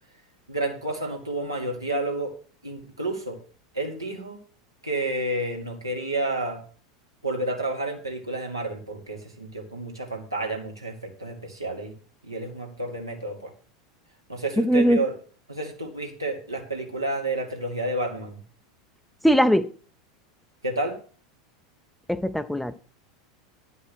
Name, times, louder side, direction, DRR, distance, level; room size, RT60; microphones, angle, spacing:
voice 1, 0.5-2.3 2.6-3.4 3.7-4.4 4.8-6.6 7.2-12.0 12.2-13.5 14.3-15.1 15.5-18.4 20.6-21.0, right 2 dB, 85° right, 1 dB, 1.9 m, -30 dB
voice 2, 14.6-15.0 19.2-19.7 22.1-22.8, equal, 5° left, 11 dB, 0.6 m, -20 dB
10.5 x 5.2 x 6.3 m, 0.40 s
figure-of-eight pair, 85°, 2 cm